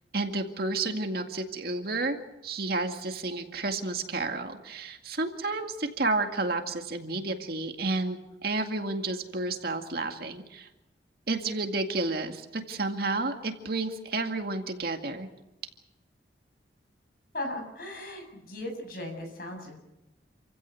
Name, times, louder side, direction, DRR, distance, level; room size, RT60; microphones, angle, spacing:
voice 1, 0.1-2.2 2.4-10.7 11.3-15.3, right 2 dB, 55° right, 5 dB, 2.1 m, -31 dB
voice 2, 17.3-19.8, left 1 dB, 55° left, 3 dB, 7.4 m, -37 dB
28.0 x 15.5 x 8.3 m, 0.93 s
head